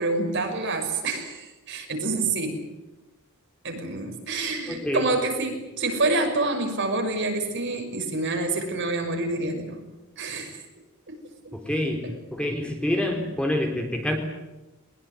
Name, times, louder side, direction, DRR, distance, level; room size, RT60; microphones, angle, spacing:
voice 1, 0.0-2.6 3.6-9.8 10.2-10.6 11.1-11.2 11.4-11.5, right 2 dB, 55° right, 4 dB, 6.2 m, -27 dB
voice 2, 4.7-5.1 11.5-14.2, left 1 dB, 5° left, 3 dB, 4.0 m, -27 dB
22.5 x 22.0 x 9.9 m, 1.0 s
head